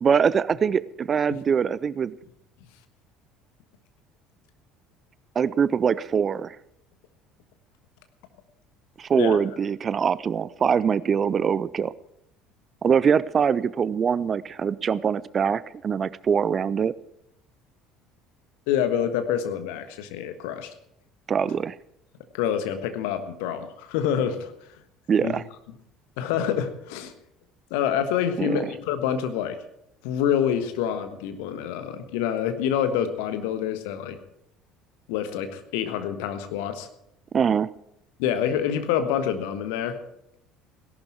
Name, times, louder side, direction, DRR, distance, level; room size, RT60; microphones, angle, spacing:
voice 1, 0.0-2.2 5.4-6.6 9.0-11.9 12.8-16.9 21.3-21.8 25.1-25.4 28.4-28.6 37.3-37.7, right 7 dB, 35° right, 19 dB, 0.5 m, -23 dB
voice 2, 18.7-20.7 22.3-24.5 25.2-25.3 26.2-27.1 27.7-29.6 30.0-34.2 35.1-36.9 38.2-40.0, left 9 dB, 60° left, 9 dB, 1.4 m, -27 dB
17.5 x 11.5 x 4.6 m, 0.77 s
figure-of-eight pair, 60°, 0 cm